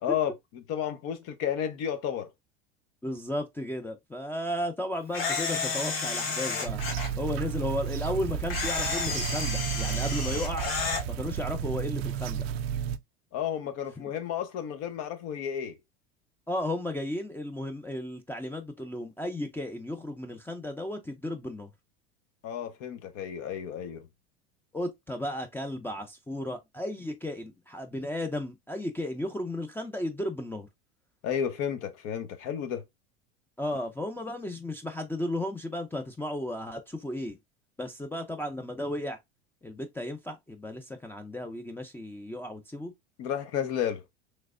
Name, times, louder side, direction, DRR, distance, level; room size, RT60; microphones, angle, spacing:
voice 1, 0.0-2.3 13.3-15.8 22.4-24.1 31.2-32.8 43.2-44.0, left 9 dB, 55° left, 0.8 m, -32 dB
voice 2, 3.0-6.8 7.2-10.7 11.1-12.5 16.5-21.7 24.7-30.7 33.6-37.4 37.8-39.2 39.6-42.9, left 1 dB, 5° left, 0.5 m, -34 dB
Camera, 5.1-7.1 8.5-11.0, left 4 dB, 80° left, 1.7 m, -31 dB
sound 1, 6.7-13.0, right 8 dB, 85° right, 0.5 m, -32 dB
3.2 x 3.2 x 2.4 m
supercardioid pair, 105°, 30 cm